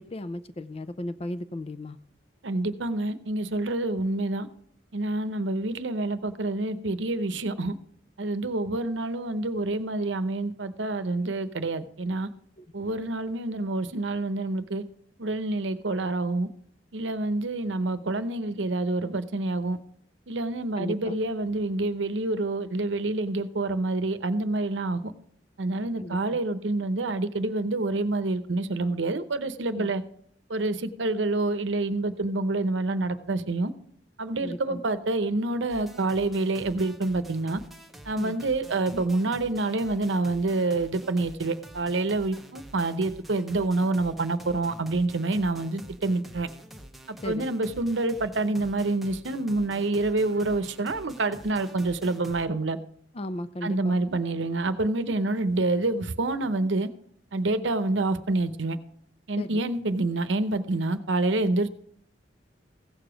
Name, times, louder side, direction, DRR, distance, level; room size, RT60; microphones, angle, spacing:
voice 1, 0.0-2.0 12.6-12.7 20.8-21.2 26.0-26.4 29.8-29.9 34.4-34.8 38.2-38.3 47.2-47.5 53.1-54.0 55.3-55.4 57.6-57.7 59.4-59.6 61.5-61.6, left 1 dB, 30° left, 14 dB, 0.5 m, -36 dB
voice 2, 2.4-4.5 4.9-7.8 8.2-12.3 12.7-14.8 15.2-16.5 16.9-19.8 20.3-25.1 25.6-30.0 30.5-33.7 34.2-37.6 38.1-46.5 47.1-52.8 53.6-56.9 57.3-58.8 59.3-61.7, right 2 dB, 75° right, 11 dB, 0.8 m, -27 dB
sound 1, 35.7-52.5, right 1 dB, ahead, 0.9 m, -47 dB
16.0 x 6.9 x 5.0 m, 0.63 s
head